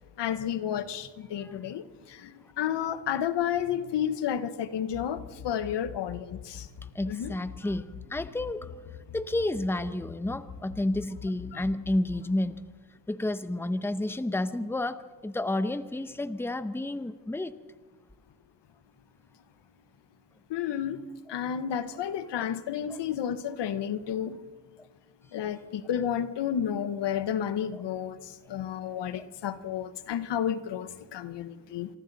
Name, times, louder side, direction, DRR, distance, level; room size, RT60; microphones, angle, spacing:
voice 1, 0.2-1.8 2.2-2.3 2.6-6.7 7.1-7.3 11.5-11.6 20.5-21.0 21.3-24.4 25.3-28.2 28.5-31.9, left 9 dB, 90° left, 13 dB, 1.1 m, -31 dB
sound 1, 4.8-12.2, left 8 dB, 70° left, 2.0 m, -43 dB
voice 2, 6.9-8.8 9.1-12.6 13.1-17.5 22.4-22.5 22.9-23.0 27.7-27.8 29.2-29.3, left 1 dB, 5° left, 12 dB, 0.8 m, -31 dB
25.5 x 25.0 x 4.0 m, 1.4 s
cardioid pair, 105°, 41 cm